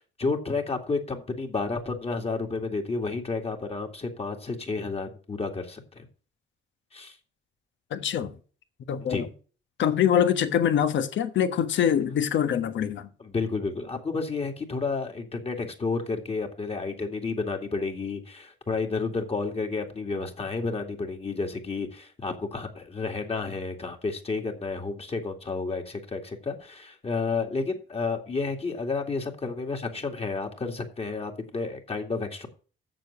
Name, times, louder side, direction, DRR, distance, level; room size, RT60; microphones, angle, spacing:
voice 1, 0.0-6.1 6.9-7.2 9.1-9.3 13.2-32.5, left 4 dB, 30° left, 2.2 m, -31 dB
voice 2, 7.9-8.4 8.9-9.3 9.8-13.1, left 9 dB, 70° left, 1.3 m, -24 dB
7.6 x 6.9 x 6.9 m
cardioid pair, 90°, 20 cm